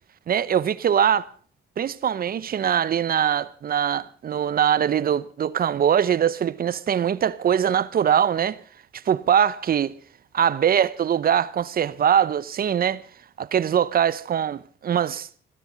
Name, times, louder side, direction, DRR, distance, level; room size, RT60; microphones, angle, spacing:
voice 1, 0.3-1.3 1.8-8.6 9.1-9.9 10.3-13.0 13.4-15.3, right 9 dB, 50° right, 0.8 m, -22 dB
15.5 x 13.0 x 5.2 m
cardioid pair, 90°, 20 cm